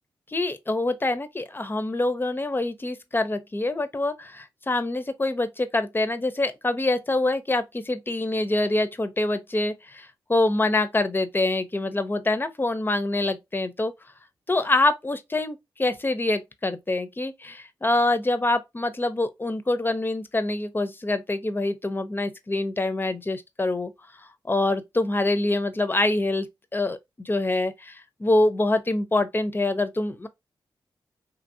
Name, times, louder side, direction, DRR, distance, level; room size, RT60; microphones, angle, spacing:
voice 1, 0.3-13.9 14.5-23.9 24.5-26.5 26.7-30.3, left 2 dB, 25° left, 0.5 m, -25 dB
2.7 x 2.6 x 2.6 m
cardioid pair, 55°, 9 cm